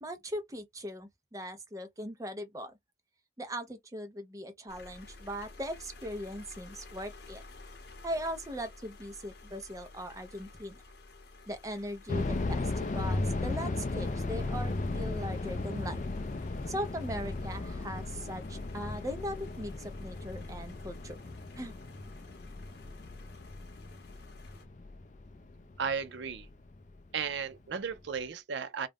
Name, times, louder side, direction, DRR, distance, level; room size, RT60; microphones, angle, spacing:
voice 1, 0.0-2.7 3.4-7.4 8.0-10.8 11.5-16.0 16.7-21.2 21.6-21.7, equal, 15° right, 0.6 m, -39 dB
sound 1, 4.7-24.7, left 3 dB, 60° left, 0.8 m, -53 dB
sound 2, 12.1-27.0 27.2-27.3 27.9-28.2, left 2 dB, 40° left, 0.4 m, -36 dB
voice 2, 25.8-26.5 27.1-28.9, right 6 dB, 70° right, 0.5 m, -35 dB
2.4 x 2.1 x 3.4 m
head